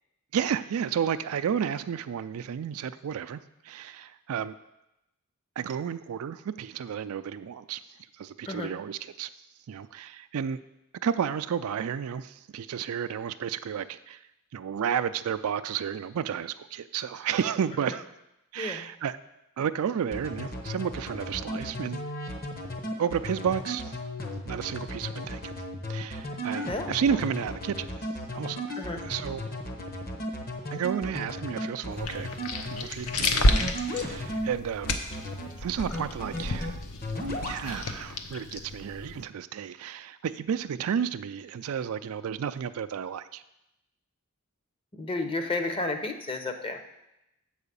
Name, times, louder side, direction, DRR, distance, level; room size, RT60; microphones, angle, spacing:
voice 1, 0.3-4.5 5.6-7.8 8.2-9.3 9.7-10.6 11.0-14.2 14.5-18.1 18.5-19.1 19.6-22.0 23.0-24.0 24.4-25.4 25.9-29.4 30.7-32.3 32.7-35.0 35.6-36.8 37.4-43.4, right 8 dB, 70° right, 12 dB, 0.4 m, -32 dB
voice 2, 18.6-18.9 26.7-27.2 28.8-29.0 44.9-46.8, left 2 dB, 25° left, 5 dB, 0.7 m, -32 dB
sound 1, 20.1-34.5 34.8-35.5 35.8-36.7 37.0-37.6, equal, 45° left, 1.1 m, -35 dB
sound 2, 31.9-39.2, left 1 dB, 75° left, 0.8 m, -30 dB
7.2 x 4.8 x 6.9 m, 0.89 s
head